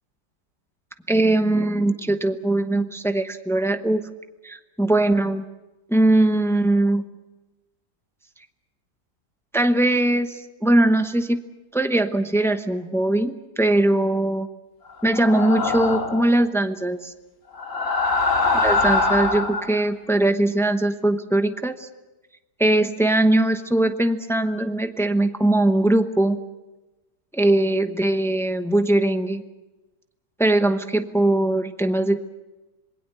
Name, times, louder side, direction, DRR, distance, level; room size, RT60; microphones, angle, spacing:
voice 1, 1.1-4.0 4.4-5.4 5.9-7.0 9.5-11.4 11.7-14.5 15.0-17.1 18.5-21.9 22.6-26.4 27.3-29.4 30.4-32.2, right 1 dB, 5° left, 8 dB, 0.5 m, -21 dB
sound 1, 15.1-16.3 17.5-19.7, left 3 dB, 50° left, 2.8 m, -22 dB
27.0 x 21.0 x 6.8 m, 1.1 s
omnidirectional pair, 1.8 m